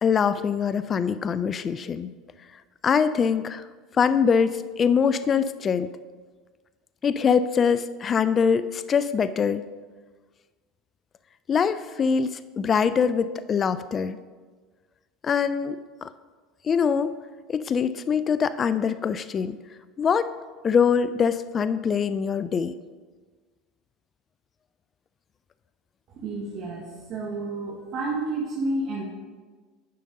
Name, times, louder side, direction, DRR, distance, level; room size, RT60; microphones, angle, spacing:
voice 1, 0.0-2.1 2.8-3.7 3.9-5.9 7.0-9.6 11.5-14.2 15.2-16.1 16.6-17.1 17.5-19.6 20.0-20.3 20.6-22.7, left 6 dB, 35° left, 13 dB, 0.3 m, -23 dB
voice 2, 26.1-29.0, right 2 dB, 50° right, -4 dB, 1.3 m, -30 dB
9.3 x 5.3 x 3.8 m, 1.4 s
hypercardioid pair, 90°, 0 cm